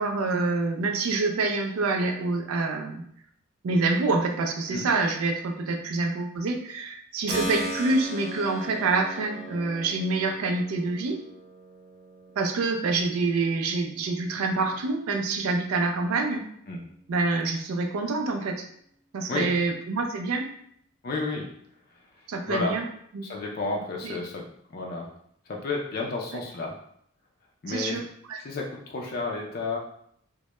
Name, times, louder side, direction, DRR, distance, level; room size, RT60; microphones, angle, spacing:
voice 1, 0.0-3.0 3.6-11.2 12.4-16.4 17.1-18.6 19.1-20.5 22.3-22.8 23.1-23.2 24.0-24.2 27.7-28.0 28.3-28.4, right 3 dB, 90° right, 3 dB, 0.4 m, -26 dB
Keyboard (musical), 7.3-15.9, right 1 dB, ahead, 0.7 m, -39 dB
voice 2, 21.0-21.5 22.5-22.8 23.2-24.4 24.7-25.1 25.5-26.7 27.6-28.0 28.4-29.8, left 3 dB, 45° left, -1 dB, 0.4 m, -31 dB
2.2 x 2.0 x 2.9 m, 0.68 s
head